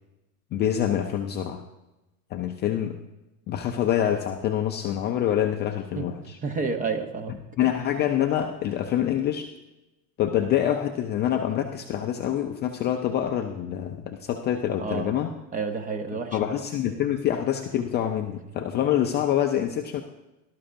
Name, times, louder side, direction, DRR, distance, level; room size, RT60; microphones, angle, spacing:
voice 1, 0.5-1.6 2.3-3.0 3.5-6.4 7.6-9.5 10.2-15.3 16.3-20.0, left 10 dB, 25° left, 4 dB, 0.4 m, -26 dB
voice 2, 6.4-7.4 7.6-7.7 14.8-15.2 15.5-16.6, right 4 dB, 20° right, 8 dB, 0.7 m, -30 dB
18.0 x 12.5 x 2.6 m, 1.0 s
supercardioid pair, 140°, 45 cm